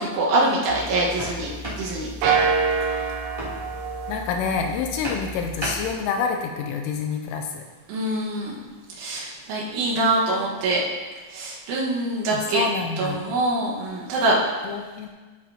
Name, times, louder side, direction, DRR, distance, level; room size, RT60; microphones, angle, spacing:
voice 1, 0.0-1.5 1.8-2.3 7.9-8.6 9.0-10.8 11.3-12.6 13.0-14.4, right 2 dB, 70° right, -5 dB, 4.0 m, -24 dB
sound 1, 0.7-5.9, equal, 10° right, 2.1 m, -35 dB
sound 2, 2.2-4.9, right 5 dB, 90° right, 2.5 m, -25 dB
voice 2, 4.1-7.6 12.3-13.3 14.6-15.1, left 6 dB, 85° left, 4 dB, 2.9 m, -27 dB
13.5 x 7.6 x 3.0 m, 1.3 s
omnidirectional pair, 5.9 m